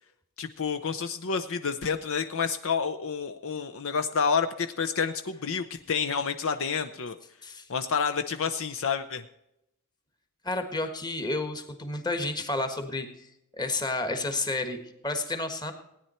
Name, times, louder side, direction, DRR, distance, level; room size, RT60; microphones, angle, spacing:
voice 1, 0.4-7.2 7.7-9.2, left 6 dB, 60° left, 9 dB, 0.6 m, -29 dB
voice 2, 10.4-13.1 13.5-14.8 15.0-15.7, left 2 dB, 20° left, 7 dB, 1.4 m, -30 dB
17.0 x 10.0 x 4.3 m, 0.84 s
head